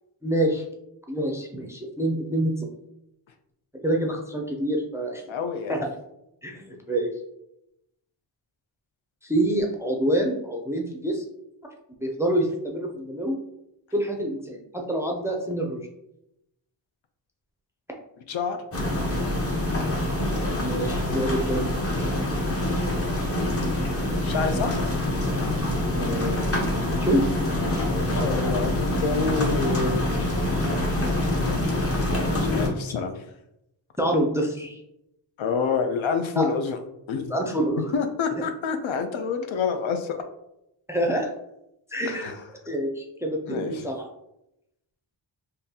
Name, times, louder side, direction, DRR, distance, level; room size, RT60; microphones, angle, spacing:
voice 1, 0.2-0.7 1.1-2.7 3.8-5.2 5.7-5.9 6.4-7.1 9.2-11.2 12.0-13.4 13.9-15.9 20.6-21.7 25.9-27.2 34.0-34.8 36.4-36.5 37.3-37.9 40.9-41.3 41.9-42.3 42.7-44.1, right 1 dB, 5° right, 0 dB, 0.4 m, -26 dB
voice 2, 5.3-5.8 18.3-18.6 24.2-24.8 27.9-30.1 32.4-33.1 35.4-36.8 37.1-37.3 37.9-40.2 42.1-42.4 43.5-43.8, left 5 dB, 80° left, 7 dB, 0.6 m, -27 dB
sound 1, 18.7-32.7, left 1 dB, 30° left, 0.7 m, -25 dB
3.7 x 2.6 x 2.7 m, 0.83 s
wide cardioid pair, 150°, 46 cm